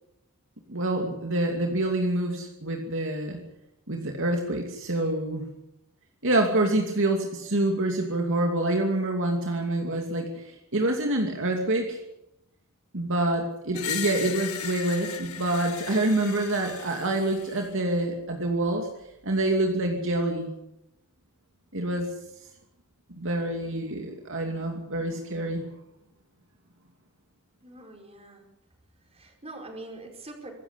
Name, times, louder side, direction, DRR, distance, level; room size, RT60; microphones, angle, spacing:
voice 1, 0.7-3.4 3.9-5.5 6.2-12.0 12.9-18.9 19.2-20.5 21.7-22.1 23.1-25.6, right 1 dB, 60° right, 2 dB, 2.6 m, -27 dB
Screech, 13.7-17.7, left 9 dB, 70° left, 1.9 m, -37 dB
voice 2, 27.6-28.4 29.1-30.5, right 2 dB, 30° right, 2 dB, 4.9 m, -43 dB
25.0 x 14.0 x 8.3 m, 0.86 s
head